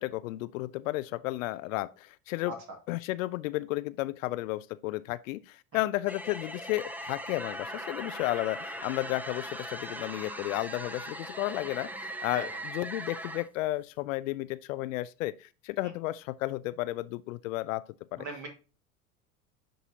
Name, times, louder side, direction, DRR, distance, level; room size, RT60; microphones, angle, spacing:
voice 1, 0.0-2.5 2.9-17.8 18.1-18.2, left 17 dB, 65° left, 0.5 m, -33 dB
voice 2, 2.5-2.8 12.3-12.5 18.2-18.5, right 2 dB, 45° right, 2.1 m, -39 dB
sound 1, 6.1-13.5, right 1 dB, 5° right, 0.9 m, -40 dB
10.0 x 4.0 x 2.8 m
hypercardioid pair, 75°, 43 cm